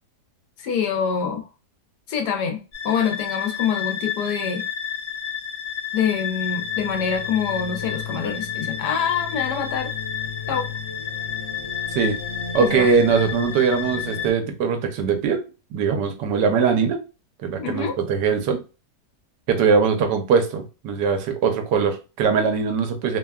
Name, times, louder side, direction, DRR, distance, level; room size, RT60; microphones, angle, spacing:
voice 1, 0.6-1.4 2.1-4.6 5.9-9.9 10.5-10.7 12.6-12.9 17.6-18.0, left 7 dB, 75° left, 1.2 m, -25 dB
sound 1, 2.7-14.3, left 8 dB, 55° left, 1.1 m, -30 dB
voice 2, 12.5-15.4 15.7-17.0 17.4-18.6 19.5-23.2, right 6 dB, 85° right, 1.3 m, -21 dB
3.1 x 2.2 x 2.2 m
omnidirectional pair, 1.8 m